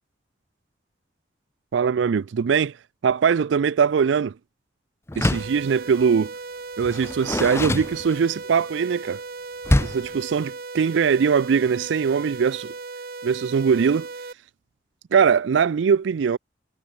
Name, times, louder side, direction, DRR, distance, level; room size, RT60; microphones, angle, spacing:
voice 1, 1.7-2.7 3.0-4.3 5.2-6.3 6.8-9.2 9.8-12.7 13.2-14.1 15.1-16.4, right 6 dB, 85° right, 0.4 m, -21 dB
Door, 5.1-5.6 6.8-8.5 9.6-10.1, left 1 dB, 15° left, 0.6 m, -24 dB
sound 1, 5.3-14.3, right 3 dB, 55° right, 0.8 m, -37 dB
head